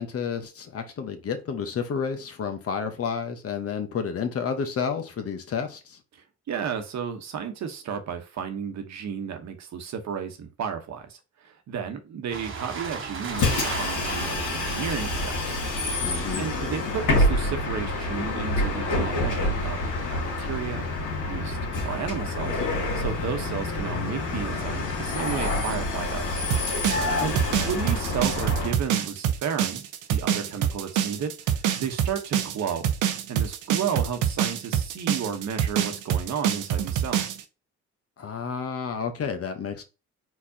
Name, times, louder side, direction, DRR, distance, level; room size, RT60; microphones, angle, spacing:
voice 1, 0.0-6.0 16.0-16.5 26.9-27.4 38.2-39.8, left 6 dB, 50° left, 1.0 m, -31 dB
voice 2, 6.5-15.6 16.4-19.8 20.1-20.9 21.2-21.6 21.8-22.6 22.9-26.4 27.2-29.8 30.1-32.9 33.3-37.3, right 7 dB, 65° right, 1.1 m, -33 dB
sound 1, 12.3-19.2, right 5 dB, 40° right, 1.1 m, -38 dB
Bus, 13.3-28.7, left 2 dB, 85° left, 2.1 m, -27 dB
sound 2, 26.5-37.4, right 9 dB, 85° right, 0.7 m, -25 dB
4.6 x 4.0 x 2.8 m
cardioid pair, 90°, 30 cm